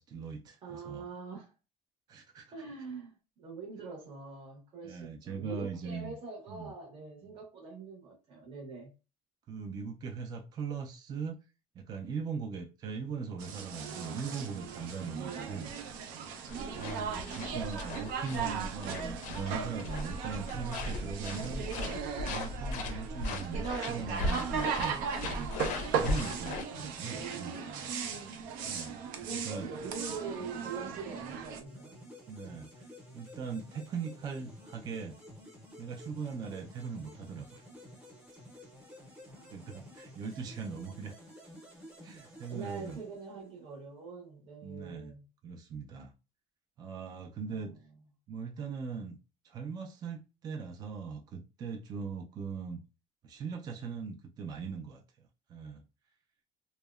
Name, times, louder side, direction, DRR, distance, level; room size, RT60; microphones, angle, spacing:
voice 1, 0.0-1.0 2.1-2.5 4.8-6.2 6.5-6.7 9.5-11.4 11.8-15.7 16.8-21.7 22.2-25.6 25.9-27.5 28.7-29.0 29.4-29.7 32.3-32.9 33.1-35.2 35.8-37.6 39.5-41.1 42.0-43.0 44.6-45.1 45.4-46.1 46.8-47.7 48.3-49.2 49.4-52.8 53.2-55.0 55.5-55.8, right 5 dB, 30° right, 0.3 m, -40 dB
voice 2, 0.6-1.5 2.5-8.9 15.1-15.7 16.7-17.6 26.4-27.9 29.2-32.0 39.3-39.9 42.5-45.2 47.5-47.8, right 4 dB, 45° right, 0.7 m, -44 dB
sound 1, 13.4-31.6, right 6 dB, 85° right, 0.5 m, -37 dB
sound 2, 16.5-26.6, left 2 dB, 70° left, 0.4 m, -38 dB
sound 3, 31.7-43.7, equal, 10° right, 0.7 m, -52 dB
2.7 x 2.0 x 2.3 m
cardioid pair, 160°, 14 cm